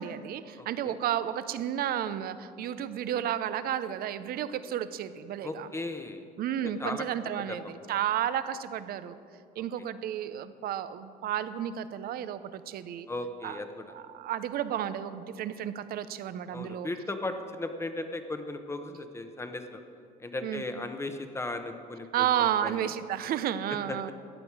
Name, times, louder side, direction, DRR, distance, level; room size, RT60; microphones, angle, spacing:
voice 1, 0.0-5.7 6.4-9.2 9.6-13.1 13.4-13.6 13.9-16.9 20.4-20.6 22.1-24.1, right 10 dB, 65° right, 13 dB, 0.6 m, -32 dB
voice 2, 0.6-1.0 5.4-6.2 6.8-7.0 7.5-7.6 7.9-8.0 13.1-13.8 16.5-19.8 20.2-22.9 23.9-24.1, left 2 dB, 15° left, 7 dB, 0.9 m, -36 dB
14.0 x 9.8 x 4.7 m, 2.5 s
cardioid pair, 110°, 17 cm